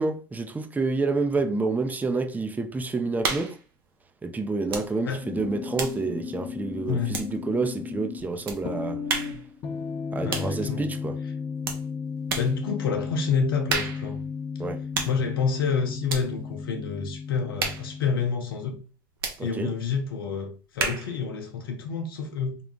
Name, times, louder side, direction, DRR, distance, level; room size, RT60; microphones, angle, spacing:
voice 1, 0.0-3.5 4.2-9.0 10.1-11.1 14.6-14.8 19.4-19.7, right 3 dB, 15° right, 0.5 m, -28 dB
sound 1, 3.2-3.6 4.7-4.9 5.2-7.6 8.5-8.6 9.1-9.4 10.3-10.6 11.6-11.9 12.3-12.6 13.7-14.1 14.9-15.2 16.1-16.3 17.6-17.9 19.2-19.4 20.8-21.2, right 4 dB, 85° right, 0.9 m, -31 dB
Guitar Chord Progression, 5.2-18.3, left 6 dB, 45° left, 0.9 m, -35 dB
voice 2, 6.9-7.2 10.2-10.9 12.3-14.2 15.0-18.8 19.4-22.6, left 5 dB, 85° left, 0.7 m, -28 dB
3.7 x 2.3 x 3.7 m
hypercardioid pair, 75°, 12 cm